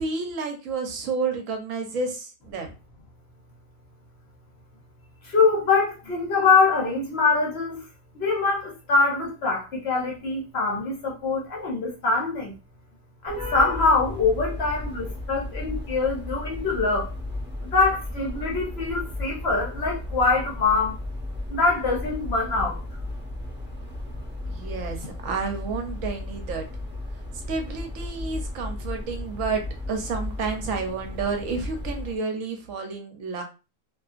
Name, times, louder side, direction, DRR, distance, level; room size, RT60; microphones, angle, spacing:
voice 1, 0.0-2.7 24.5-26.7 27.5-29.6 29.9-33.4, right 4 dB, 75° right, 1.0 m, -30 dB
voice 2, 5.3-7.8 8.2-12.5 13.2-17.1 17.7-21.0 21.5-22.8, left 4 dB, 60° left, 0.8 m, -23 dB
sound 1, 13.3-32.2, left 1 dB, 15° right, 0.4 m, -34 dB
2.6 x 2.4 x 2.4 m
omnidirectional pair, 1.5 m